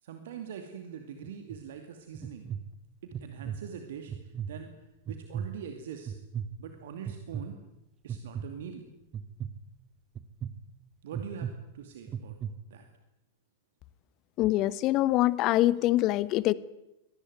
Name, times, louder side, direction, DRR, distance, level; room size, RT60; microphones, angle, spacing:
voice 1, 0.0-2.5 3.0-6.1 6.6-7.6 8.0-8.9 11.0-11.5 11.7-12.4 12.7-12.9, right 7 dB, 60° right, 6 dB, 2.5 m, -43 dB
sound 1, 1.2-1.6 2.1-2.6 3.1-3.6 4.1-4.5 5.1-5.5 6.1-6.5 7.1-7.4 8.1-8.5 9.1-9.5 10.2-10.5 11.1-11.5 12.1-12.5, right 8 dB, 25° right, 1.5 m, -35 dB
voice 2, 14.4-16.5, left 16 dB, 40° left, 20 dB, 1.0 m, -24 dB
24.5 x 19.0 x 9.4 m, 0.91 s
figure-of-eight pair, 90°, 0 cm